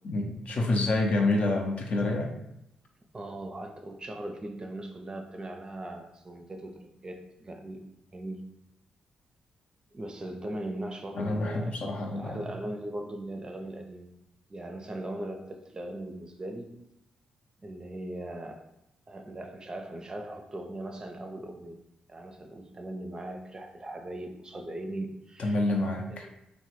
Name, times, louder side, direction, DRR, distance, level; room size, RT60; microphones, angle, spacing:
voice 1, 0.0-2.3 11.1-12.4 25.4-26.3, left 2 dB, 55° left, 2 dB, 0.5 m, -28 dB
voice 2, 3.1-7.8 8.1-8.4 9.9-11.7 12.1-14.1 14.5-16.7 17.6-18.7 19.1-21.8 22.1-25.6 26.1-26.3, right 1 dB, 30° right, 4 dB, 0.4 m, -39 dB
3.1 x 2.1 x 3.0 m, 0.85 s
hypercardioid pair, 45°, 3 cm